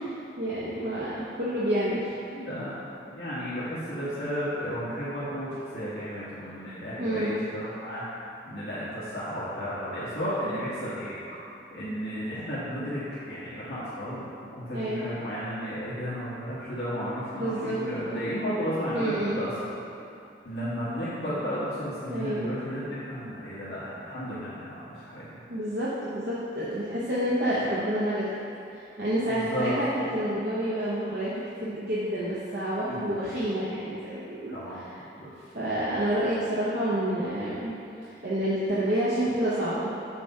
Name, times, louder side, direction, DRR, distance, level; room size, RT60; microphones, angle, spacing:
voice 1, 0.4-2.1 7.0-7.4 14.7-15.0 17.3-18.2 18.9-19.4 22.1-22.5 25.5-28.4 28.7-34.9 35.5-37.7 38.0-39.9, right 1 dB, 60° right, -9 dB, 1.0 m, -29 dB
voice 2, 2.3-2.7 3.1-8.0 8.5-11.1 11.7-19.5 20.4-25.3 29.3-29.8 32.9-33.2 34.5-34.8 35.1-35.3, equal, 65° left, -11 dB, 1.7 m, -33 dB
6.9 x 4.3 x 5.7 m, 2.8 s
head